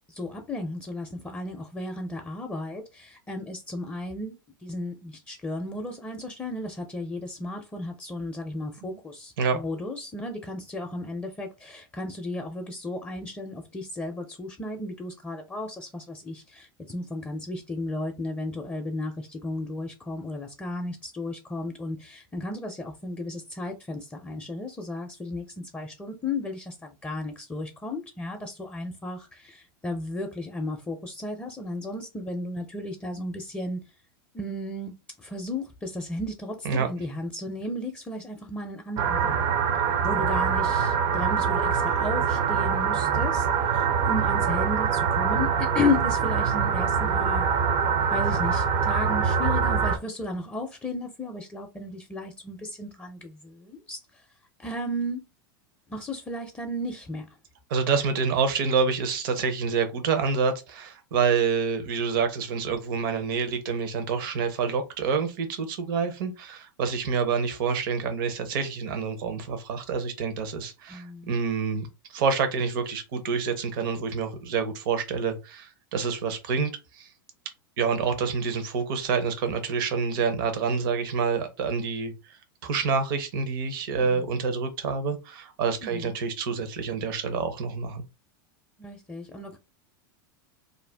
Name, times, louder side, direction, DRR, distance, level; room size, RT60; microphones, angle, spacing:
voice 1, 0.1-4.3 4.6-33.8 34.3-39.5 40.0-47.4 48.1-54.2 54.6-55.3 55.9-57.3 70.9-71.3 84.0-84.3 85.8-86.1 88.8-89.6, left 2 dB, 15° left, 0.5 m, -34 dB
sound 1, 39.0-50.0, right 6 dB, 45° right, 0.5 m, -24 dB
voice 2, 57.7-77.1 77.8-88.0, right 5 dB, 70° right, 0.8 m, -27 dB
2.5 x 2.2 x 3.3 m
hypercardioid pair, 110°, 12 cm